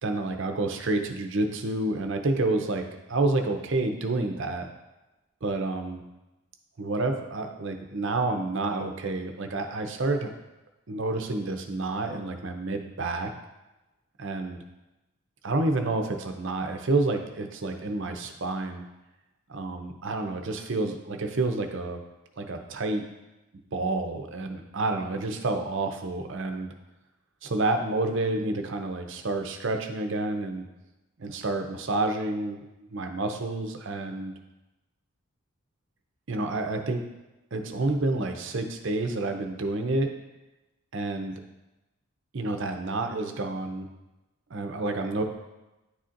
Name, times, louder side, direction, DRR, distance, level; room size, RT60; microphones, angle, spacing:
voice 1, 0.0-4.7 5.4-6.0 6.8-10.3 10.9-13.3 14.2-14.6 15.4-18.9 19.5-22.0 22.4-23.0 23.7-26.7 27.4-30.7 31.2-32.6 32.9-34.3 36.3-37.0 37.5-40.1 40.9-41.4 42.3-43.9 44.5-45.2, right 2 dB, 55° right, 5 dB, 0.6 m, -29 dB
10.0 x 4.2 x 2.5 m, 1.0 s
head